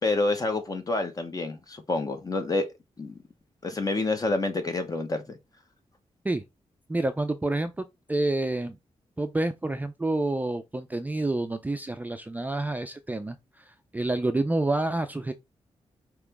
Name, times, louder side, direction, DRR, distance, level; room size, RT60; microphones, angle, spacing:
voice 1, 0.0-2.7 3.0-3.2 3.6-5.4, left 2 dB, 30° left, 0.9 m, -28 dB
voice 2, 6.9-8.8 9.2-15.3, right 2 dB, 15° right, 0.4 m, -28 dB
5.0 x 3.0 x 3.4 m
wide cardioid pair, 110°, 12 cm